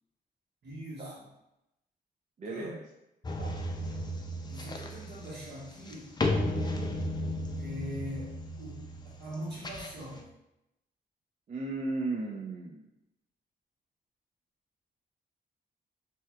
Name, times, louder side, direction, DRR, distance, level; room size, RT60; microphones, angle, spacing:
voice 1, 0.6-1.3 2.5-2.7 4.5-6.1 7.6-8.9 9.2-10.3, equal, 75° right, -7 dB, 1.4 m, -42 dB
voice 2, 2.4-2.9 3.4-3.6 11.5-12.9, right 2 dB, 45° right, -1 dB, 0.4 m, -35 dB
sound 1, 3.2-10.2, left 1 dB, 25° left, 0.4 m, -34 dB
3.3 x 2.7 x 2.3 m, 0.88 s
cardioid pair, 85°, 18 cm